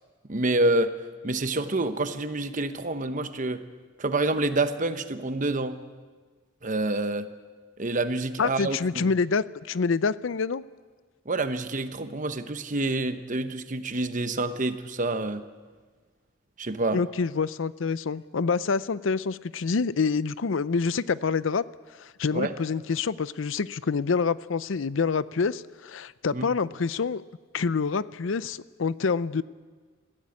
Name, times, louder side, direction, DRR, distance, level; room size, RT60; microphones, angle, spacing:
voice 1, 0.3-0.9 1.2-3.6 4.0-5.8 6.6-7.3 7.8-9.1 11.3-15.4 16.6-17.0 22.3-22.5 26.3-26.5, right 2 dB, 40° right, 10 dB, 1.0 m, -27 dB
voice 2, 8.4-10.6 16.9-21.6 22.0-27.2 27.5-29.4, left 5 dB, 80° left, 17 dB, 0.5 m, -27 dB
21.5 x 15.5 x 8.7 m, 1.5 s
head